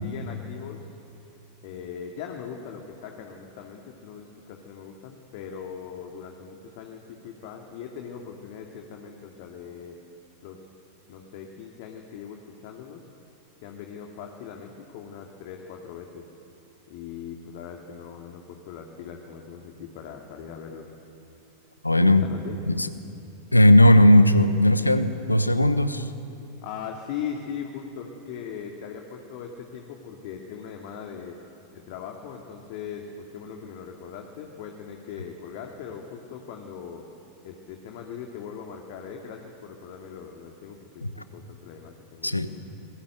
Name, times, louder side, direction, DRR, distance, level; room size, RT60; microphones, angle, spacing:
voice 1, 0.0-0.9 1.6-10.0 10.4-10.6 11.1-13.1 13.6-16.3 16.9-20.9 22.0-22.6 26.6-31.4 31.7-37.0 37.4-42.4, left 7 dB, 50° left, 2 dB, 2.4 m, -40 dB
voice 2, 21.8-22.2 22.7-22.9 23.5-26.0 41.0-41.1 42.2-42.5, left 1 dB, 85° left, 12 dB, 1.2 m, -17 dB
27.5 x 21.5 x 8.1 m, 2.7 s
figure-of-eight pair, 90°, 0 cm